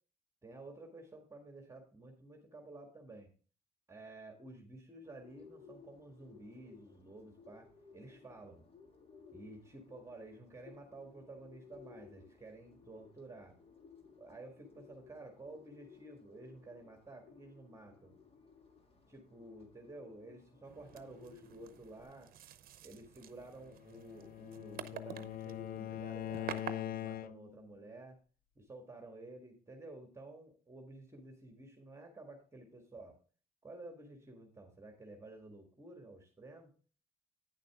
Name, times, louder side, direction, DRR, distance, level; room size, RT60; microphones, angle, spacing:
voice 1, 0.4-3.3 3.9-8.6 9.3-13.6 14.2-18.1 19.1-22.3 22.8-28.2 28.5-33.2 33.6-36.7, right 2 dB, 15° right, 3 dB, 1.8 m, -52 dB
Bird, 5.0-22.0, left 5 dB, 35° left, 1.7 m, -60 dB
sound 1, 20.6-26.7, right 10 dB, 65° right, 0.8 m, -49 dB
Bowed string instrument, 23.7-27.6, left 12 dB, 65° left, 0.5 m, -42 dB
9.5 x 6.6 x 3.6 m, 0.39 s
cardioid pair, 90°, 16 cm